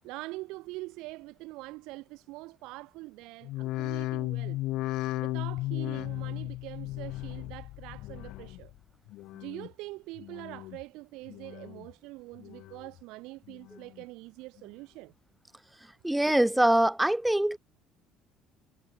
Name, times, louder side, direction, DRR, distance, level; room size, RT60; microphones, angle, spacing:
voice 1, 0.0-4.6 5.2-8.7 9.3-15.1, right 21 dB, 80° right, 6.5 m, -44 dB
sound 1, 3.4-8.8 9.1-9.7 10.2-10.8 11.3-11.9 12.3-13.0 13.5-14.0 14.6-14.7, left 18 dB, 70° left, 0.5 m, -36 dB
voice 2, 16.0-17.6, right 1 dB, 5° right, 0.5 m, -23 dB
cardioid pair, 140°, 0 cm